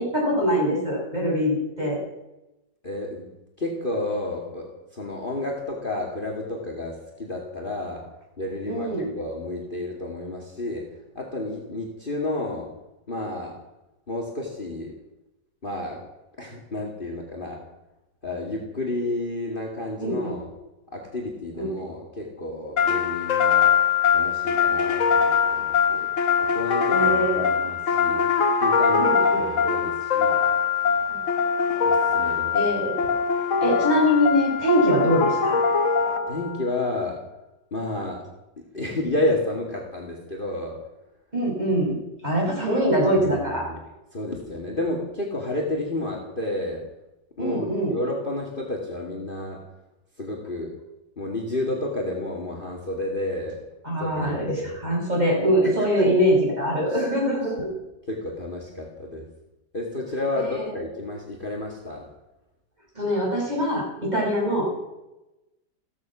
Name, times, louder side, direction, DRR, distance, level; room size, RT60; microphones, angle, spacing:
voice 1, 0.0-2.0 8.6-9.1 20.0-20.3 21.5-21.7 26.9-27.5 29.0-29.4 31.1-31.2 32.2-33.0 33.6-35.6 41.3-42.0 42.2-43.7 47.4-47.9 53.8-54.5 54.8-57.7 60.6-60.7 62.9-64.7, equal, 20° right, -2 dB, 6.4 m, -23 dB
voice 2, 2.8-3.3 3.6-8.0 8.4-10.9 11.1-12.7 13.1-13.5 14.1-14.9 15.6-16.0 16.4-17.6 18.2-20.4 20.9-23.8 24.1-26.1 26.4-28.3 28.6-30.4 31.8-32.5 36.3-37.2 37.7-38.2 38.6-40.8 43.5-43.8 44.1-46.8 47.4-49.6 50.2-50.7 51.2-53.6 54.0-54.8 55.6-56.1 58.1-59.3 59.7-62.1, left 2 dB, 30° left, 1 dB, 2.3 m, -31 dB
sound 1, 22.8-36.6, left 6 dB, 50° left, 1.3 m, -22 dB
15.5 x 14.5 x 6.1 m, 0.98 s
omnidirectional pair, 1.9 m